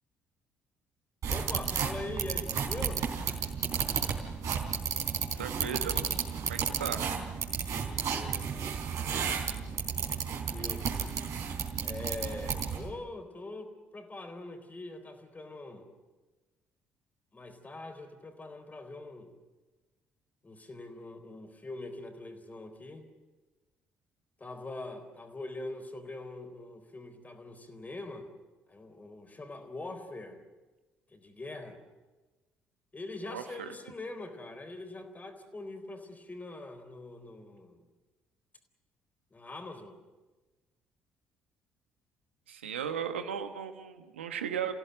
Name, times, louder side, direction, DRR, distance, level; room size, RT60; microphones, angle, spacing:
sound 1, 1.2-12.9, right 7 dB, 60° right, 3.9 m, -33 dB
voice 1, 1.3-3.1 7.9-8.8 10.3-11.1 11.8-15.9 17.3-19.3 20.4-23.0 24.4-28.3 28.7-30.4 31.1-31.8 32.9-37.8 39.3-40.0, left 2 dB, 25° left, 7 dB, 3.9 m, -43 dB
voice 2, 5.3-6.0 6.5-7.0 33.3-33.7 42.5-44.7, right 8 dB, 90° right, 8 dB, 1.3 m, -36 dB
28.5 x 16.5 x 7.9 m, 1.2 s
hypercardioid pair, 50°, 6 cm